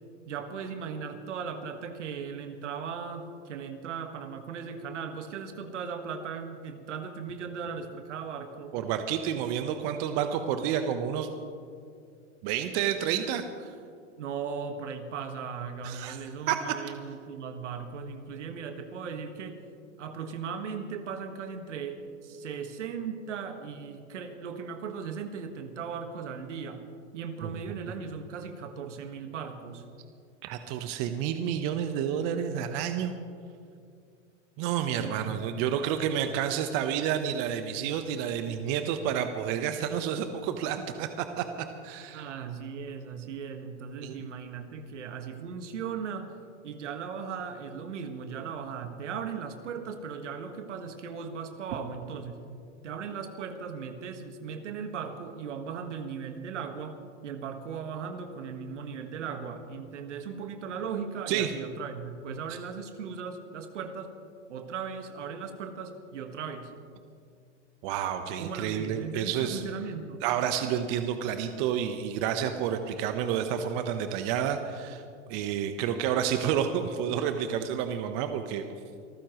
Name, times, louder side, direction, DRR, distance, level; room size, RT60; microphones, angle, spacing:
voice 1, 0.3-8.8 14.2-19.6 20.0-26.8 27.1-29.8 34.9-35.4 42.1-46.3 46.6-52.4 52.8-64.1 64.5-66.7 68.4-70.2, right 6 dB, 75° right, 7 dB, 1.7 m, -37 dB
voice 2, 8.7-11.3 12.4-13.7 15.8-16.2 16.5-16.7 27.4-27.5 30.4-33.1 34.6-41.5 41.8-42.3 44.0-44.2 61.3-61.5 67.8-69.6 70.2-75.0 75.3-78.6, right 9 dB, 45° right, 8 dB, 1.1 m, -30 dB
26.0 x 14.5 x 3.1 m, 2.3 s
hypercardioid pair, 105°, 37 cm